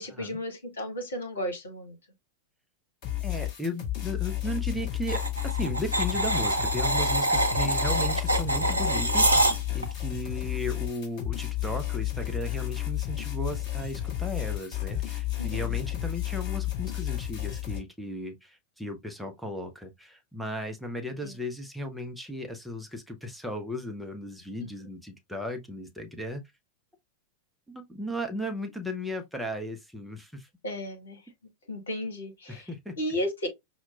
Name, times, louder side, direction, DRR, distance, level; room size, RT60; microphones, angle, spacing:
voice 1, 0.0-2.0 15.4-15.8 21.2-21.3 24.6-24.7 30.6-31.2 31.7-32.7 33.0-33.5, left 1 dB, 70° left, 1.2 m, -34 dB
sound 1, 3.0-17.8, left 15 dB, 40° left, 2.1 m, -32 dB
voice 2, 3.2-26.4 27.7-30.5 32.5-32.9, equal, ahead, 0.6 m, -36 dB
sound 2, 5.1-9.9, right 1 dB, 80° right, 0.6 m, -25 dB
5.8 x 2.1 x 2.3 m
figure-of-eight pair, 90°, 0 cm